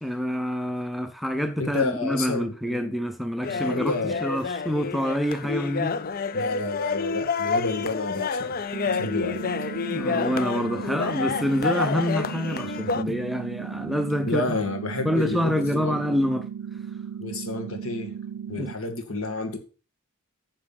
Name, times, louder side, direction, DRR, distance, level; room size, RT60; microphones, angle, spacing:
voice 1, 0.0-6.0 9.9-14.6 15.0-16.5 18.6-18.7, equal, ahead, 0.6 m, -27 dB
voice 2, 1.6-2.9 3.4-4.2 6.3-8.6 8.9-9.5 14.3-16.2 17.2-18.1 18.5-19.6, left 3 dB, 65° left, 2.2 m, -30 dB
sound 1, 3.4-13.0, left 5 dB, 40° left, 0.5 m, -29 dB
sound 2, 8.7-18.7, right 8 dB, 90° right, 0.6 m, -36 dB
9.9 x 6.1 x 5.8 m
head